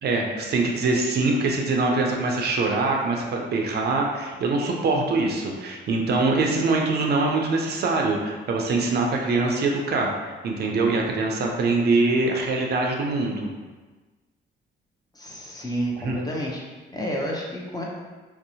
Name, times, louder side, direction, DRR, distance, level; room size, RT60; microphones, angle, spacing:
voice 1, 0.0-10.1 10.4-13.5 16.0-16.2, right 3 dB, 55° right, 1 dB, 0.4 m, -23 dB
voice 2, 15.1-16.6 16.9-17.8, equal, 20° left, -3 dB, 0.5 m, -30 dB
2.7 x 2.0 x 2.7 m, 1.3 s
cardioid pair, 90°, 20 cm